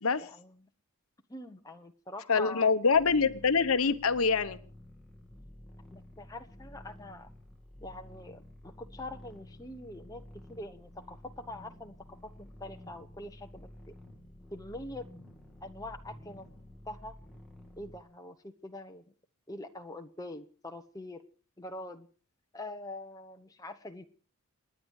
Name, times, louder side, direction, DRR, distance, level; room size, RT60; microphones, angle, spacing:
voice 1, 0.2-0.6 1.3-2.7 5.9-7.3 7.8-10.2 10.5-12.3 12.6-13.7 14.5-15.1 15.6-17.1 17.8-19.0 19.5-21.2 21.6-22.1 22.5-24.0, left 2 dB, 15° left, 5 dB, 1.1 m, -44 dB
voice 2, 2.3-4.6, left 5 dB, 75° left, 11 dB, 1.0 m, -25 dB
sound 1, 2.9-18.0, left 1 dB, ahead, 2.4 m, -51 dB
29.0 x 10.0 x 4.8 m, 0.40 s
head